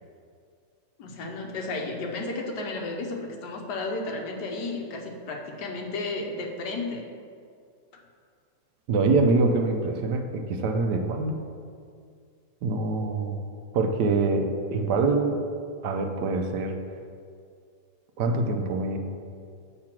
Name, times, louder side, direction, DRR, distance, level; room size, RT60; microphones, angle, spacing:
voice 1, 1.0-7.1 7.9-8.0, left 2 dB, 75° left, 1 dB, 1.4 m, -33 dB
voice 2, 8.9-11.4 12.6-13.4 13.7-15.4 15.8-16.8 18.2-19.0, right 3 dB, 80° right, 5 dB, 1.2 m, -24 dB
7.2 x 3.8 x 5.9 m, 2.2 s
omnidirectional pair, 1.8 m